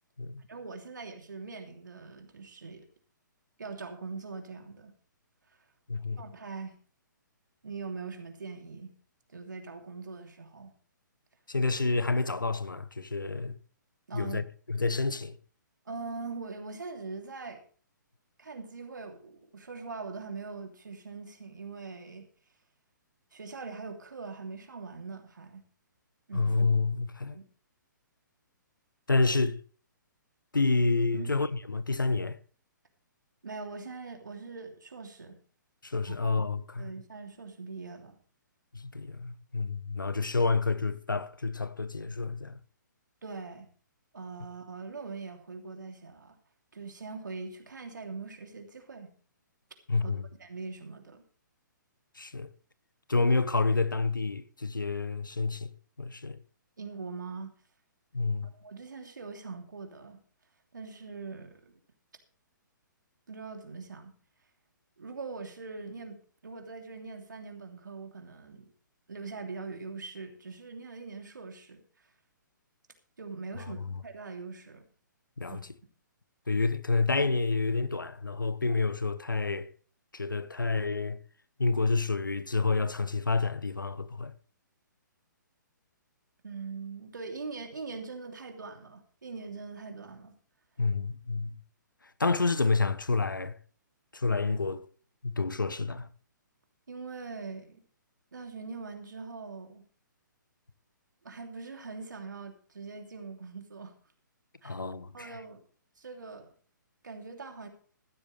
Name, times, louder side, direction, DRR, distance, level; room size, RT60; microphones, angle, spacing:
voice 1, 0.5-2.9 3.6-4.9 6.2-6.8 7.6-8.9 9.3-10.7 14.1-14.4 15.9-17.6 18.4-22.3 23.3-25.6 26.3-26.6 27.3-27.4 31.1-31.4 33.4-35.4 36.1-36.2 36.8-38.2 43.2-43.7 44.1-46.4 46.7-49.1 50.0-50.1 50.4-51.2 56.8-57.5 58.4-60.2 60.7-61.8 63.3-64.1 65.0-68.7 69.1-71.8 73.2-74.9 75.5-75.6 86.4-90.3 96.9-97.8 98.3-99.8 101.2-103.9 104.6-104.8 105.1-105.6 106.0-106.5 107.0-107.7, right 4 dB, 70° right, 3.1 m, -42 dB
voice 2, 5.9-6.2 11.5-13.5 14.1-15.4 26.3-27.4 29.1-29.6 30.5-32.4 35.8-36.9 38.7-42.6 49.9-50.2 52.2-52.5 53.1-55.7 56.0-56.4 58.1-58.5 75.4-75.6 76.5-79.7 80.1-81.2 81.6-84.3 90.8-91.6 92.2-93.6 94.1-94.8 95.2-96.1 104.6-105.4, left 3 dB, 85° left, 1.1 m, -29 dB
15.0 x 13.0 x 3.4 m
figure-of-eight pair, 125°, 11 cm